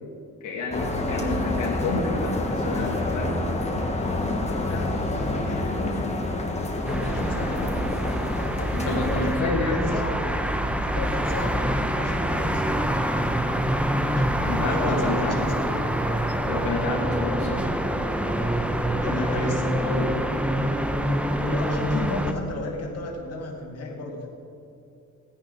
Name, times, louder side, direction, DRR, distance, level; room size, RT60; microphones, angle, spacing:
voice 1, 0.4-3.4 8.7-10.0 14.4-15.5 16.4-17.6 19.2-20.2, left 2 dB, 75° left, -2 dB, 2.1 m, -29 dB
sound 1, 0.7-9.4, left 2 dB, 20° left, 1.6 m, -28 dB
voice 2, 4.5-6.1 6.9-7.7 8.9-10.2 10.9-11.6 12.0-12.6 14.1-15.7 19.0-19.9 21.3-24.3, left 2 dB, 55° left, -1 dB, 2.1 m, -33 dB
sound 2, 6.9-22.3, equal, 5° right, 0.8 m, -26 dB
16.5 x 10.0 x 4.0 m, 2.6 s
cardioid pair, 90°, 30 cm